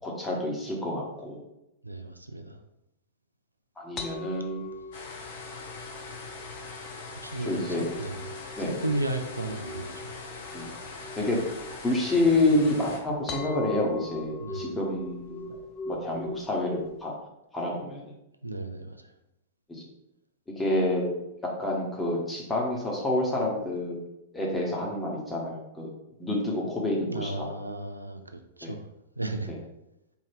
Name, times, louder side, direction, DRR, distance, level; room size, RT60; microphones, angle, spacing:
voice 1, 0.0-1.4 3.8-4.6 7.4-7.8 8.6-8.7 10.5-10.7 11.2-11.4 11.8-15.6 15.8-17.1 17.5-18.1 19.7-19.8 20.6-21.1 21.6-24.0 24.3-25.9 26.2-27.5 28.6-28.7, left 1 dB, 10° left, -2 dB, 1.2 m, -28 dB
voice 2, 1.8-2.6 7.1-10.1 14.4-14.8 18.4-19.1 27.1-28.9 29.2-29.5, right 2 dB, 85° right, 7 dB, 0.4 m, -34 dB
sound 1, 4.0-17.1, left 2 dB, 30° left, 0.5 m, -42 dB
sound 2, 4.9-13.0, left 4 dB, 55° left, 0.8 m, -42 dB
4.4 x 2.8 x 3.6 m, 0.88 s
figure-of-eight pair, 100°, 0 cm